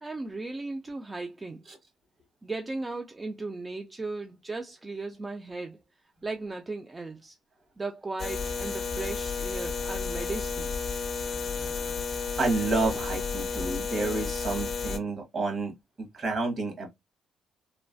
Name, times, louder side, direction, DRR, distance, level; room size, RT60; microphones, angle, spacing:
voice 1, 0.0-1.6 2.4-5.8 6.2-7.4 7.8-10.8, right 3 dB, 25° right, 0.3 m, -36 dB
sound 1, 8.2-15.0, left 5 dB, 45° left, 0.5 m, -32 dB
voice 2, 12.4-16.9, right 3 dB, 45° right, 1.2 m, -30 dB
3.2 x 2.2 x 2.5 m
cardioid pair, 90°, 0 cm